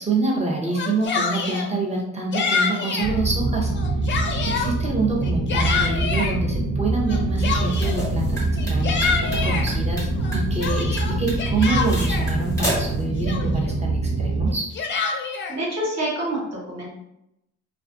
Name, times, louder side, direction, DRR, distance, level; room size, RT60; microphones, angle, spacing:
voice 1, 0.0-3.7 4.5-9.1 9.4-10.1 10.3-14.7, right 3 dB, 20° right, -1 dB, 0.7 m, -26 dB
Yell, 0.7-1.7 2.3-3.1 3.7-4.7 5.2-6.3 7.1-8.0 8.6-9.7 10.2-12.3 12.9-13.0 13.2-13.7 14.5-15.6, left 5 dB, 40° left, 0.4 m, -26 dB
sound 1, 3.0-14.5, right 2 dB, 75° right, 0.7 m, -25 dB
sound 2, 7.6-13.0, left 2 dB, 10° left, 1.0 m, -31 dB
voice 2, 15.5-16.9, right 1 dB, 60° right, -5 dB, 1.2 m, -27 dB
2.3 x 2.2 x 2.4 m, 0.82 s
cardioid pair, 90°, 30 cm